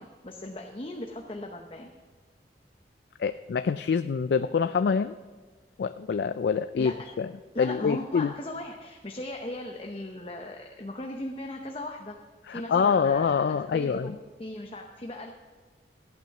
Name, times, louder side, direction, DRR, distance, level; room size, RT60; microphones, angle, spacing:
voice 1, 0.0-1.9 6.8-7.1 7.5-12.2 12.5-15.3, left 1 dB, 30° left, 2 dB, 0.8 m, -38 dB
voice 2, 3.2-5.1 5.8-7.3 7.6-8.3 12.5-14.1, left 6 dB, 65° left, 10 dB, 0.3 m, -26 dB
14.5 x 9.0 x 5.9 m, 1.4 s
head